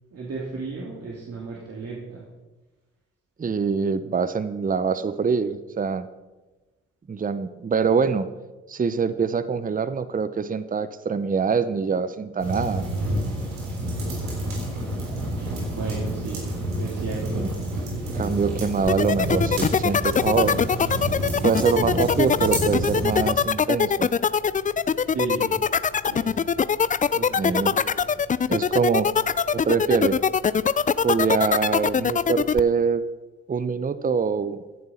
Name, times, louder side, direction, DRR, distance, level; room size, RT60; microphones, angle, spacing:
voice 1, 0.1-2.2 15.7-16.5 16.8-17.5 17.9-18.1 25.1-25.5 26.1-26.5 27.1-28.1, right 4 dB, 45° right, -3 dB, 2.8 m, -34 dB
voice 2, 3.4-6.1 7.1-8.3 8.7-12.9 17.3-17.5 18.1-20.6 21.4-24.1 27.4-27.7 28.5-29.1 29.5-30.2 31.0-33.0 33.5-34.6, right 5 dB, 25° right, 13 dB, 0.8 m, -24 dB
sound 1, 12.4-23.3, right 1 dB, 80° right, 3.8 m, -29 dB
sound 2, 18.9-32.6, left 6 dB, 25° left, 0.5 m, -22 dB
15.5 x 10.5 x 4.3 m, 1.2 s
hypercardioid pair, 45°, 33 cm